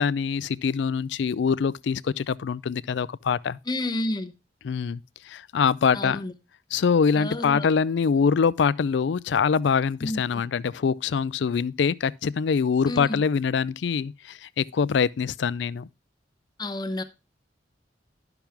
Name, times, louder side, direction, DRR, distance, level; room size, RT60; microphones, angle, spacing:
voice 1, 0.0-3.6 4.6-5.0 5.3-6.2 6.7-15.9, left 6 dB, 65° left, 0.4 m, -24 dB
voice 2, 3.7-4.3 5.9-6.3 7.1-7.7 10.0-10.4 12.9-13.2 16.6-17.0, left 1 dB, 20° left, 0.8 m, -30 dB
11.5 x 5.9 x 3.4 m
head